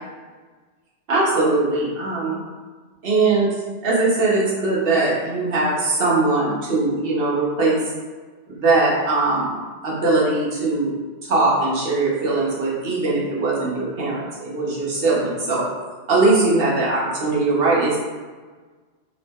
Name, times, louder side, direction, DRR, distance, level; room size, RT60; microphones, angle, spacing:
voice 1, 1.1-2.4 3.0-3.5 3.8-7.8 8.5-9.6 9.8-10.9 11.2-15.6 16.1-18.0, right 3 dB, 55° right, -6 dB, 0.9 m, -20 dB
2.9 x 2.0 x 3.4 m, 1.4 s
omnidirectional pair, 1.3 m